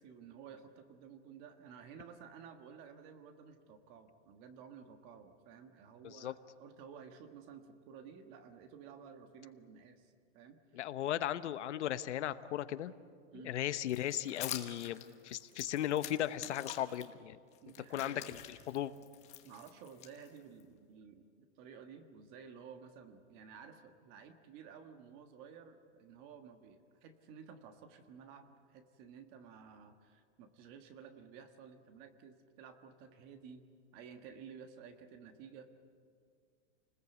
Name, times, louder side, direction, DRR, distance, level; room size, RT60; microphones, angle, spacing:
voice 1, 0.0-10.8 13.3-13.6 17.6-18.3 19.4-33.7 33.9-35.7, right 6 dB, 30° right, 8 dB, 1.5 m, -54 dB
voice 2, 10.7-12.9 13.4-17.4 17.9-18.4 18.7-18.9, left 12 dB, 75° left, 13 dB, 1.1 m, -36 dB
sound 1, 13.9-17.0 17.5-20.6, left 12 dB, 20° left, 1.2 m, -47 dB
29.0 x 20.0 x 8.3 m, 2.2 s
supercardioid pair, 175°, 35 cm